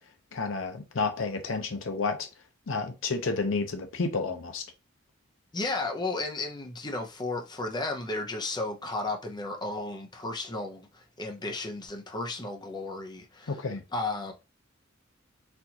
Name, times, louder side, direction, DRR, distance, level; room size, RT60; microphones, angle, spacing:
voice 1, 0.3-2.3 2.7-4.6 13.5-13.8, left 4 dB, 70° left, 0.7 m, -30 dB
voice 2, 5.5-13.6 13.9-14.3, left 2 dB, 20° left, 0.7 m, -34 dB
4.3 x 2.5 x 2.8 m
head